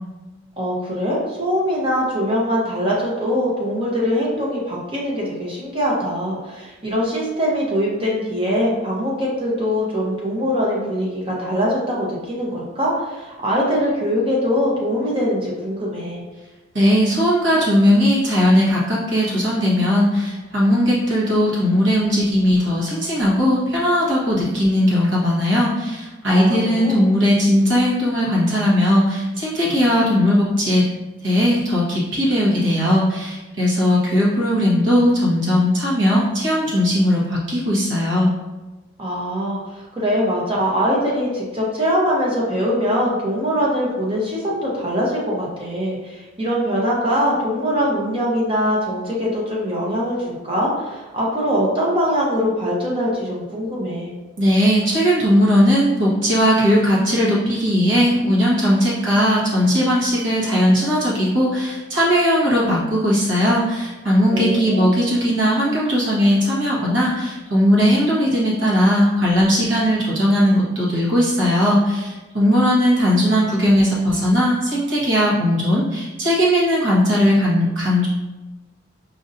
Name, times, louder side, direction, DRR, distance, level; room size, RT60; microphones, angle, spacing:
voice 1, 0.6-16.2 26.3-27.0 39.0-54.1 64.3-64.8, equal, 25° right, -4 dB, 0.8 m, -22 dB
voice 2, 16.7-30.9 31.2-38.3 54.4-78.1, equal, 60° right, -6 dB, 1.3 m, -18 dB
5.0 x 2.7 x 2.6 m, 1.1 s
head